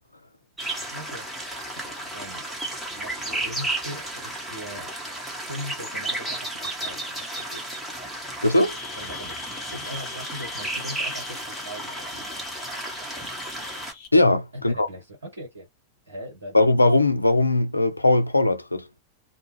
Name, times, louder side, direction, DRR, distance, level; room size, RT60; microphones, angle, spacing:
sound 1, 0.6-13.9, right 1 dB, 5° right, 0.9 m, -33 dB
voice 1, 0.9-1.4 1.7-2.5 2.9-4.9 5.3-7.6 9.0-9.4 9.7-12.2 14.5-15.7 16.1-16.6, equal, 75° right, 1.1 m, -40 dB
voice 2, 8.4-8.8 14.1-14.9 16.5-18.8, left 2 dB, 85° left, 0.3 m, -19 dB
sound 2, 8.6-14.1, left 6 dB, 45° left, 0.8 m, -41 dB
2.2 x 2.1 x 3.1 m
figure-of-eight pair, 90°, 0 cm